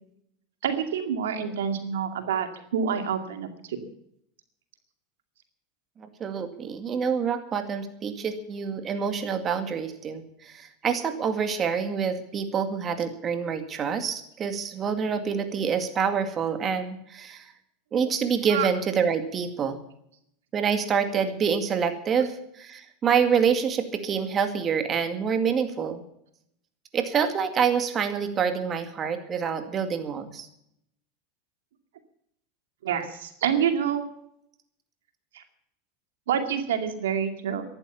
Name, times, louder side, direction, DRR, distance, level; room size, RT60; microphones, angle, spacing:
voice 1, 0.6-3.8 18.5-18.7 32.8-34.0 35.3-35.4 36.3-37.6, right 8 dB, 85° right, 7 dB, 2.3 m, -27 dB
voice 2, 6.0-17.5 17.9-19.8 20.5-26.0 26.9-30.5, right 6 dB, 30° right, 8 dB, 2.2 m, -27 dB
14.0 x 11.5 x 7.1 m, 0.74 s
hypercardioid pair, 110°, 0 cm